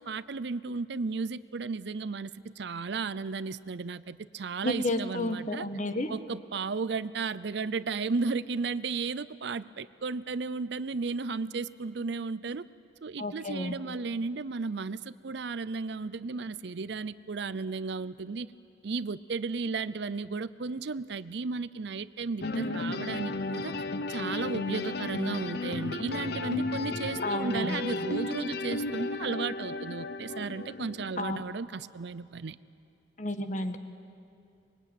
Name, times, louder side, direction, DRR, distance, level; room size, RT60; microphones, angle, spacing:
voice 1, 0.0-5.7 6.1-12.7 13.0-18.5 18.8-23.7 24.1-32.6, right 4 dB, 60° right, 17 dB, 0.5 m, -34 dB
voice 2, 4.6-6.1 13.2-13.8 27.2-27.8 31.2-31.4 33.2-33.8, left 1 dB, 40° left, 8 dB, 1.4 m, -31 dB
sound 1, 22.4-31.4, left 2 dB, 55° left, 0.9 m, -34 dB
25.0 x 22.0 x 9.1 m, 2.6 s
head